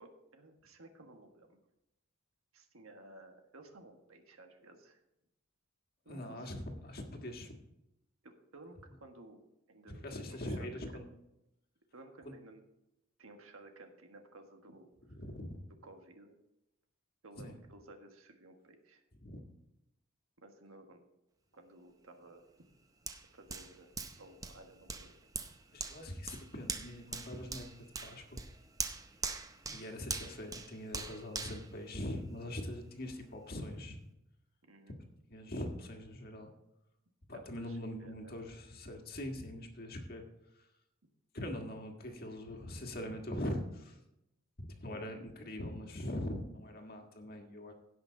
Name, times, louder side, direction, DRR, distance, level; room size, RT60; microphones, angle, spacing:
voice 1, 0.0-1.6 2.5-5.0 6.0-6.5 8.2-10.7 11.9-12.6 13.2-14.9 15.8-16.4 17.2-19.0 20.4-21.0 21.5-22.5 23.3-23.9 24.2-25.1 34.7-34.9 37.6-38.3, right 2 dB, 90° right, 5 dB, 1.5 m, -56 dB
voice 2, 6.1-7.5 10.0-11.1 12.2-12.3 15.2-15.6 17.4-17.5 19.2-19.4 25.7-27.7 28.0-28.4 29.6-34.0 35.3-36.5 37.3-40.2 41.3-44.0 44.6-47.7, left 1 dB, 50° left, 3 dB, 1.6 m, -42 dB
Hands, 23.1-32.6 33.0-33.2, right 4 dB, 15° right, 0.6 m, -43 dB
16.5 x 6.0 x 3.9 m, 0.88 s
head